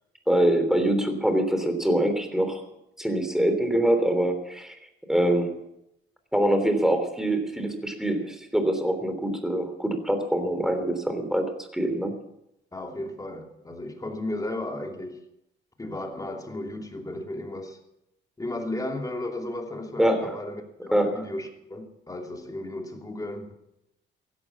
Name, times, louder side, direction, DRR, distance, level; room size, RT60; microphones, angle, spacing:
voice 1, 0.3-2.6 3.0-4.8 5.1-5.5 6.3-11.4 11.7-12.1 20.0-20.3 20.9-21.2, right 1 dB, ahead, 3.3 m, -24 dB
voice 2, 12.7-15.2 15.8-17.8 18.4-23.6, left 1 dB, 15° left, 2.8 m, -34 dB
16.0 x 11.5 x 7.3 m
cardioid pair, 90°, 20 cm